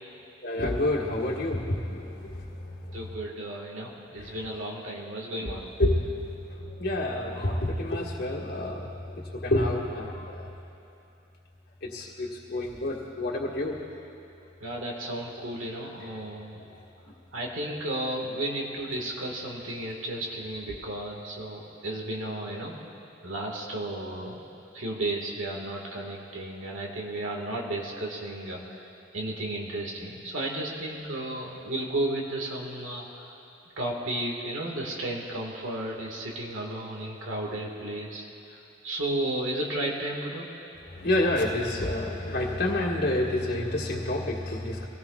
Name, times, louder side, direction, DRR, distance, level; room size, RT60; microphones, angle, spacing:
voice 1, 0.4-2.5 4.2-4.3 5.4-5.5 5.8-6.1 6.5-10.5 11.8-13.8 40.9-44.9, left 1 dB, 55° left, -4 dB, 1.6 m, -28 dB
voice 2, 2.9-5.7 14.6-16.6 17.3-22.8 23.2-24.5 24.7-33.3 33.8-40.5, right 1 dB, 80° right, -1 dB, 1.8 m, -33 dB
24.0 x 17.5 x 2.4 m, 2.8 s
head